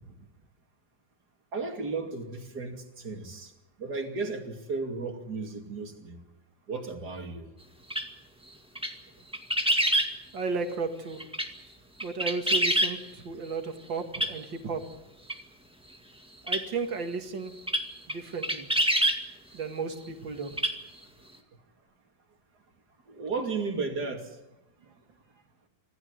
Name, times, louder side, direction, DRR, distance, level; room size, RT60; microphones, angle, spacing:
voice 1, 1.5-3.5 3.8-6.2 6.7-7.5 23.1-24.3, right 4 dB, 55° right, 3.2 m, -34 dB
sound 1, 7.9-8.0 8.7-8.9 9.3-10.1 11.2-11.5 12.0-12.9 14.1-14.3 15.3-15.4 16.5-16.6 17.7-17.8 18.1-18.2 18.4-19.2 20.5-20.7 21.0-21.1, equal, 5° right, 1.9 m, -25 dB
voice 2, 10.3-11.2 12.0-13.0 13.2-14.8 16.5-17.5 18.1-18.7 19.5-20.5, right 4 dB, 80° right, 2.8 m, -33 dB
26.0 x 16.0 x 9.4 m
omnidirectional pair, 2.0 m